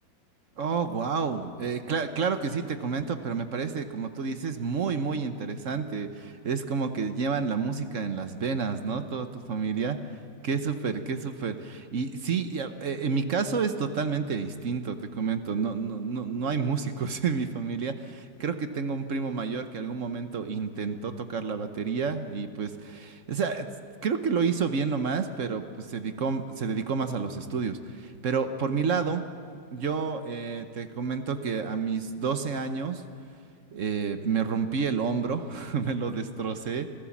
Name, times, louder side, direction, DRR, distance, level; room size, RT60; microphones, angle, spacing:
voice 1, 0.6-10.0 10.4-23.7 24.0-29.2 29.7-33.0 33.7-36.9, right 5 dB, 50° right, 9 dB, 1.1 m, -30 dB
26.5 x 15.5 x 7.3 m, 2.3 s
omnidirectional pair, 2.1 m